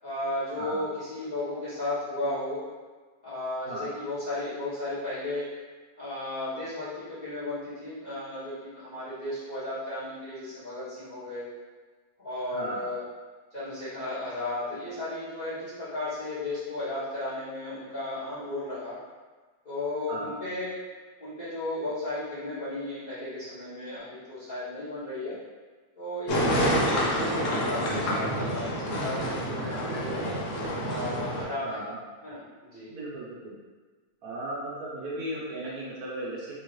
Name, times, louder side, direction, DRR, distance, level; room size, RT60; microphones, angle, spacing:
voice 1, 0.0-2.6 3.2-5.5 6.0-11.5 12.2-13.0 13.5-19.0 19.6-20.7 21.2-25.3 25.9-30.2 30.8-31.9 32.2-32.9, left 2 dB, 30° left, -13 dB, 1.7 m, -34 dB
voice 2, 12.5-12.8 20.1-20.3 27.5-27.6 31.6-32.0 32.9-33.5 34.2-36.5, right 1 dB, 75° right, -5 dB, 1.4 m, -36 dB
sound 1, 26.3-31.4, equal, 65° left, 1.1 m, -28 dB
3.7 x 2.9 x 3.1 m, 1.4 s
omnidirectional pair, 1.5 m